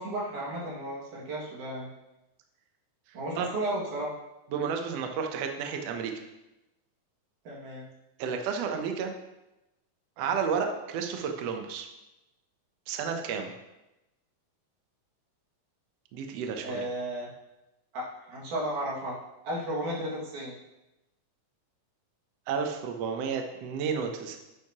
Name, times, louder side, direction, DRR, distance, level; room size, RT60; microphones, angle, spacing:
voice 1, 0.0-1.9 3.1-4.1 7.4-7.9 16.6-17.3 17.9-19.1 19.4-20.5, right 1 dB, 60° right, -5 dB, 3.4 m, -34 dB
voice 2, 4.5-6.1 8.2-9.1 10.2-11.9 12.9-13.5 16.1-16.9 22.5-24.4, right 6 dB, 80° right, 4 dB, 1.4 m, -31 dB
9.5 x 9.2 x 2.9 m, 0.96 s
omnidirectional pair, 4.1 m